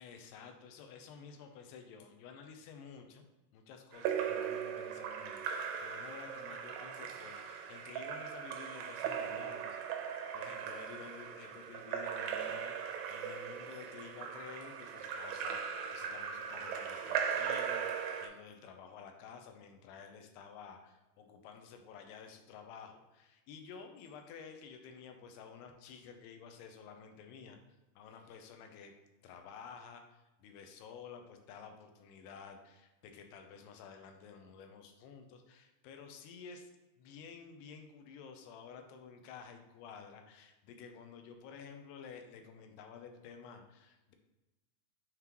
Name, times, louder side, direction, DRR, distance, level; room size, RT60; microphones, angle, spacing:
voice 1, 0.0-3.3 3.5-9.8 10.3-27.6 28.0-28.9 29.2-36.7 37.0-44.1, left 6 dB, 85° left, 5 dB, 2.8 m, -52 dB
Splash splatter / Drip / Trickle dribble, 3.9-18.3, right 7 dB, 85° right, 2.1 m, -39 dB
9.1 x 3.8 x 3.0 m, 1.1 s
omnidirectional pair, 4.7 m